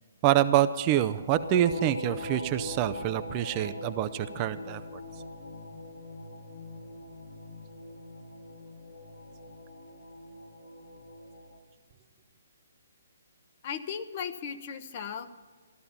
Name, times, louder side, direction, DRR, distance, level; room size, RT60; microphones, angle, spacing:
voice 1, 0.2-4.8, right 12 dB, 30° right, 11 dB, 0.5 m, -26 dB
sound 1, 1.3-11.6, left 2 dB, 80° left, 3.9 m, -42 dB
voice 2, 13.6-15.3, left 7 dB, 40° left, 9 dB, 1.0 m, -36 dB
14.5 x 12.5 x 5.8 m, 1.5 s
figure-of-eight pair, 140°, 0 cm